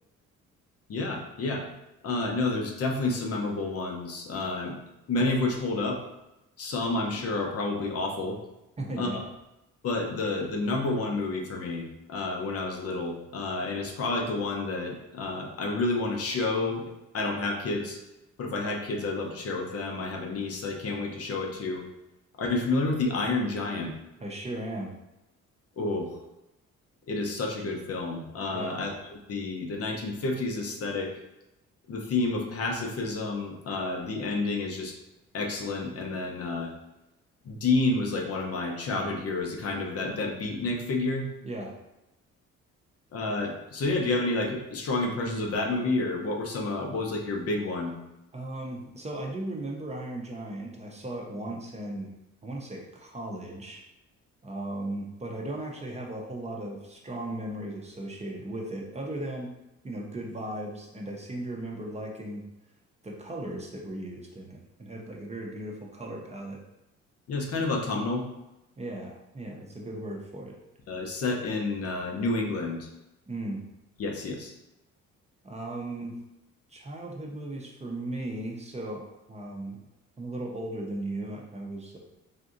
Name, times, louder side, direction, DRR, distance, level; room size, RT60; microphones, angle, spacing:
voice 1, 0.9-1.7 2.0-4.8 5.1-6.0 6.6-8.4 9.0-9.2 9.8-16.8 17.1-18.0 18.4-21.8 22.4-23.9 25.8-26.2 27.1-31.2 31.9-34.9 35.3-36.7 37.4-41.3 43.1-47.9 67.3-68.2 70.9-72.9 74.0-74.5, left 2 dB, 50° left, 1 dB, 0.7 m, -29 dB
voice 2, 8.8-9.2 24.2-24.9 28.5-28.8 41.4-41.7 48.3-52.1 52.4-53.8 54.4-59.5 59.8-62.4 63.0-66.6 68.8-70.6 73.3-73.6 75.4-76.1 76.7-79.8 80.2-82.0, right 1 dB, 20° right, 0 dB, 0.6 m, -37 dB
3.5 x 2.6 x 2.5 m, 0.93 s
cardioid pair, 90°, 30 cm